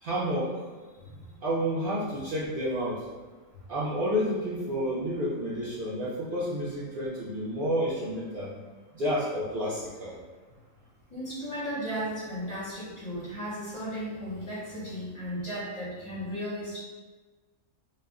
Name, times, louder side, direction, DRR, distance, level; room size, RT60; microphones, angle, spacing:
voice 1, 0.0-0.7 1.4-3.1 3.7-8.5 8.9-10.2, equal, 55° right, -7 dB, 0.6 m, -30 dB
voice 2, 1.0-1.4 11.1-16.8, equal, 30° left, -8 dB, 0.6 m, -35 dB
2.3 x 2.1 x 3.5 m, 1.3 s
omnidirectional pair, 1.4 m